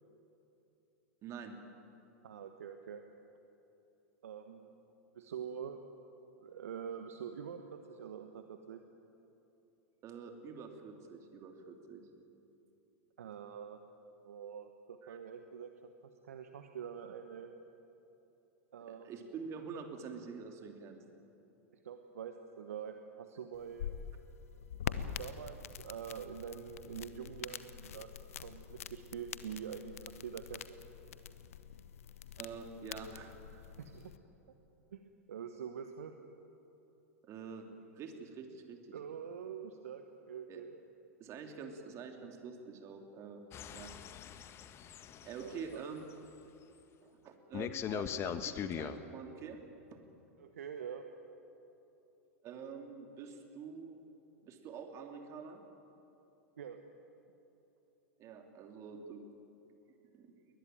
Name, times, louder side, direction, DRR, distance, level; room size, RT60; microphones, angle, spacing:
voice 1, 1.2-1.5 10.0-12.1 15.0-15.2 18.8-21.0 32.4-33.7 37.2-38.9 40.5-40.6 41.2-43.4 43.7-43.9 45.2-46.0 47.0-49.6 49.9-50.0 52.4-54.0 54.4-55.6 58.2-59.2 60.1-60.3, right 5 dB, 35° right, 4 dB, 3.1 m, -47 dB
voice 2, 2.2-3.0 4.2-4.7 5.1-5.8 6.4-8.8 13.2-13.8 14.2-15.9 16.2-17.5 18.7-19.2 21.8-23.9 24.8-28.1 28.4-29.9 30.2-30.7 33.8-34.1 34.9-35.0 35.3-36.1 38.9-40.8 45.4-45.8 50.4-51.0 56.6-56.8, right 8 dB, 70° right, 7 dB, 1.3 m, -45 dB
sound 1, 23.5-34.2, left 9 dB, 70° left, 1.0 m, -45 dB
sound 2, 43.5-45.6 47.5-49.0, left 9 dB, 30° left, 1.2 m, -40 dB
21.5 x 19.5 x 9.1 m, 3.0 s
figure-of-eight pair, 90°, 8 cm